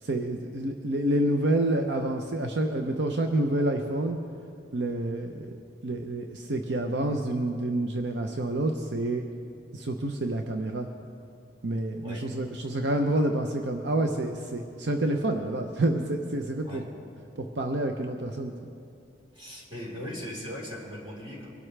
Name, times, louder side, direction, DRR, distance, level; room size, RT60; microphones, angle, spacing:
voice 1, 0.0-4.2 4.7-5.5 5.8-9.2 9.7-10.9 11.6-16.8 17.4-18.5, right 1 dB, 75° right, 4 dB, 0.7 m, -28 dB
voice 2, 19.3-21.5, left 1 dB, 30° right, -4 dB, 4.0 m, -39 dB
23.5 x 12.0 x 3.3 m, 2.5 s
head